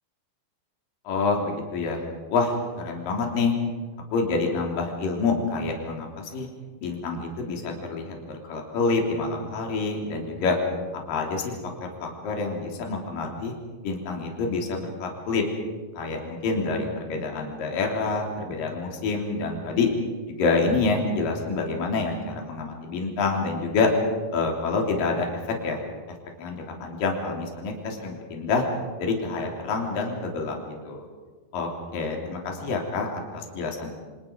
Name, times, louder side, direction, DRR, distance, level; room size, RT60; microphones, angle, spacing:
voice 1, 1.0-2.0 2.3-2.6 2.8-3.6 4.1-6.5 6.8-10.6 11.1-11.6 11.8-13.5 13.8-15.4 15.9-19.9 20.3-23.9 24.3-25.8 26.4-28.6 29.0-30.6 30.8-31.1 31.5-33.9, left 4 dB, 50° left, 1 dB, 4.7 m, -27 dB
29.5 x 25.5 x 5.2 m, 1.4 s
omnidirectional pair, 5.2 m